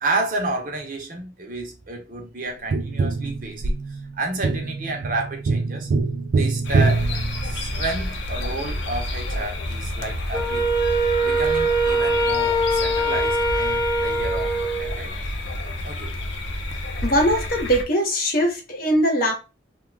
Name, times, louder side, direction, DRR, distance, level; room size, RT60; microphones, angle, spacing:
voice 1, 0.0-3.7 4.2-5.9 6.3-7.1 7.4-10.7 11.2-14.5 14.8-15.2 15.8-16.1, right 2 dB, 50° right, 0.8 m, -30 dB
Tap, 2.7-8.0 10.6-10.7, right 3 dB, 65° right, 0.4 m, -24 dB
sound 1, 6.6-17.8, left 1 dB, 75° left, 0.6 m, -29 dB
Wind instrument woodwind instrument, 10.3-15.0, right 1 dB, 20° left, 0.4 m, -22 dB
voice 2, 17.0-19.3, equal, 50° left, 0.9 m, -21 dB
2.8 x 2.4 x 3.3 m
head